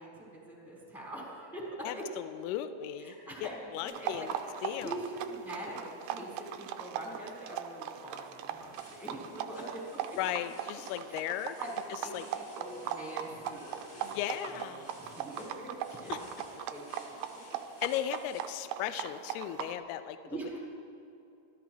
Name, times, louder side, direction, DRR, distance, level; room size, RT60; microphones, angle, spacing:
voice 1, 0.0-2.0 3.0-4.3 4.8-10.0 11.1-11.3 11.6-11.7 12.0-14.7 15.0-15.7 16.0-16.9 20.2-20.6, right 1 dB, ahead, -5 dB, 3.3 m, -43 dB
voice 2, 1.8-4.3 4.6-5.0 10.2-11.6 11.9-12.3 14.0-14.9 16.1-16.2 17.8-20.2, left 11 dB, 85° left, 11 dB, 2.3 m, -36 dB
sound 1, 3.8-19.7, right 10 dB, 85° right, 2.3 m, -40 dB
sound 2, 8.5-18.4, left 1 dB, 65° left, 6.3 m, -57 dB
26.0 x 13.5 x 3.1 m, 2.7 s
omnidirectional pair, 5.2 m